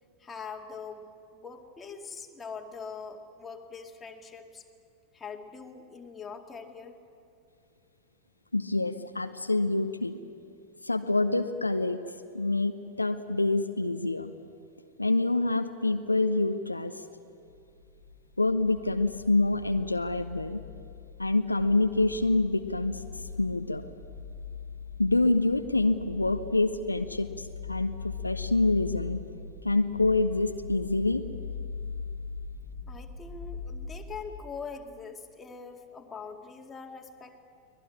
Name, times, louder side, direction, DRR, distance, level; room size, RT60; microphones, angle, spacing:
voice 1, 0.2-4.7 5.1-7.0 32.9-37.4, left 5 dB, 15° left, 2 dB, 2.3 m, -43 dB
voice 2, 8.5-10.2 10.8-12.0 12.3-14.3 15.0-16.9 18.4-20.6 21.2-23.0 23.4-23.8 25.0-29.2 29.6-31.2, left 2 dB, 85° left, 8 dB, 0.8 m, -26 dB
sound 1, 17.5-34.2, left 6 dB, 85° right, 6.4 m, -41 dB
24.0 x 18.5 x 9.9 m, 2.5 s
figure-of-eight pair, 90°, 0 cm